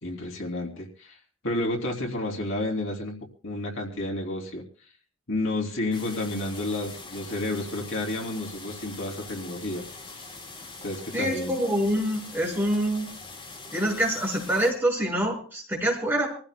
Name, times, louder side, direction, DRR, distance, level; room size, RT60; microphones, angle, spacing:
voice 1, 0.0-1.2 1.4-3.2 3.4-4.6 5.3-9.8 10.1-10.2 10.8-11.5, left 1 dB, 65° left, 0 dB, 3.1 m, -31 dB
sound 1, 5.9-14.7, left 3 dB, 25° left, 4.2 m, -43 dB
voice 2, 11.1-13.1 13.7-16.3, right 1 dB, 10° right, -2 dB, 5.5 m, -26 dB
26.5 x 15.5 x 2.2 m, 0.41 s
head